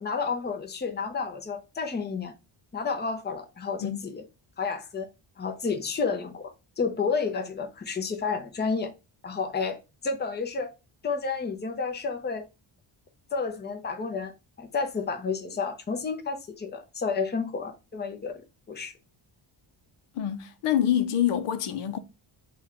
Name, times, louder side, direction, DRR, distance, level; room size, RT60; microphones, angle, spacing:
voice 1, 0.0-2.3 2.7-4.2 4.6-5.1 5.4-6.5 6.8-8.9 9.2-9.8 10.0-10.7 11.0-12.5 13.3-14.3 14.6-18.4 18.7-18.9, left 5 dB, 20° left, 0.6 m, -30 dB
voice 2, 3.8-4.1 20.1-22.0, left 10 dB, 85° left, 0.7 m, -26 dB
4.0 x 2.4 x 4.2 m
wide cardioid pair, 165°, 50 cm